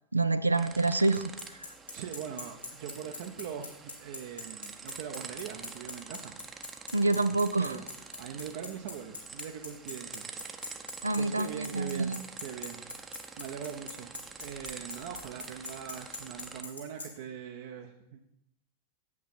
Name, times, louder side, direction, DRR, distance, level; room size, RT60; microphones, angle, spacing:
voice 1, 0.1-1.7 6.9-7.8 11.0-12.2, right 3 dB, 80° right, 12 dB, 0.3 m, -27 dB
sound 1, 0.5-16.6, right 5 dB, 20° right, 0.7 m, -47 dB
Bicycle, 1.1-17.0, left 3 dB, 85° left, 2.5 m, -41 dB
voice 2, 1.9-6.4 7.5-7.8 8.2-10.3 11.2-12.8 13.4-14.1 14.4-18.3, right 8 dB, 50° right, 3 dB, 0.7 m, -41 dB
8.4 x 8.2 x 4.3 m, 0.83 s
figure-of-eight pair, 90°, 0 cm